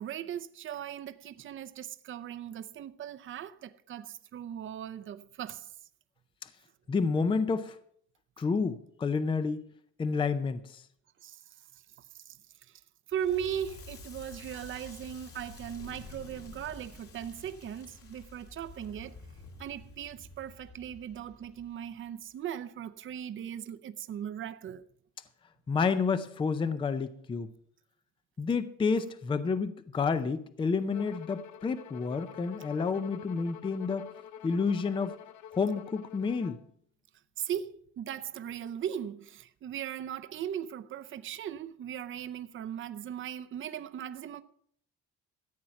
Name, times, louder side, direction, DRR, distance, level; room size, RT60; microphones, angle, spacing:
voice 1, 0.0-5.7 11.2-11.4 11.7-11.8 12.3-12.8 13.1-19.2 19.6-24.9 37.4-44.4, right 9 dB, 40° right, 0.6 m, -38 dB
voice 2, 6.9-7.8 8.4-9.6 10.0-10.8 25.7-27.5 28.4-34.1 34.4-35.1 35.6-36.6, left 5 dB, 15° left, 0.5 m, -29 dB
Crackle, 13.1-22.1, left 3 dB, 50° left, 2.3 m, -50 dB
Bowed string instrument, 30.9-36.7, left 10 dB, 75° left, 0.8 m, -47 dB
14.0 x 9.0 x 5.8 m
cardioid pair, 180°, 30 cm